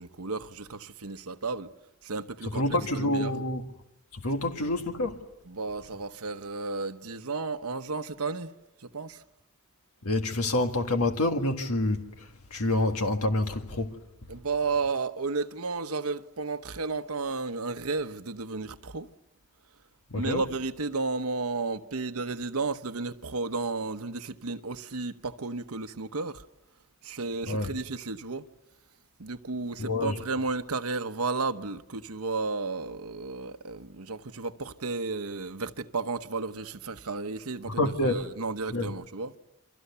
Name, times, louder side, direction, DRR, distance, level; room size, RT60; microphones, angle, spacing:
voice 1, 0.0-1.7 2.0-3.3 5.5-8.5 8.8-9.2 14.3-19.1 20.1-26.4 27.0-28.4 29.2-39.3, right 3 dB, 85° right, 1.1 m, -33 dB
voice 2, 2.4-3.6 4.1-5.2 10.0-14.0 20.1-20.4 27.5-27.7 29.8-30.2 37.7-38.2 38.7-38.9, left 2 dB, 85° left, 1.8 m, -27 dB
29.0 x 25.5 x 6.9 m
head